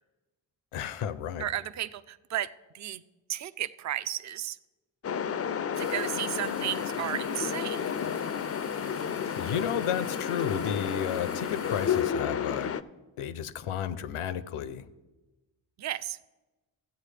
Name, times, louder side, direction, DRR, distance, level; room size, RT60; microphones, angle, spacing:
voice 1, 0.7-1.5 9.4-12.7 13.2-14.9, left 9 dB, 85° left, 14 dB, 0.7 m, -32 dB
voice 2, 1.4-3.0 3.3-4.6 5.8-7.8 15.8-16.2, right 12 dB, 40° right, 14 dB, 0.4 m, -34 dB
sound 1, 5.0-12.8, left 8 dB, 35° left, 0.4 m, -31 dB
sound 2, 5.7-12.0, right 5 dB, 70° right, 1.1 m, -51 dB
14.0 x 8.2 x 3.3 m, 1.1 s
cardioid pair, 55°, 50 cm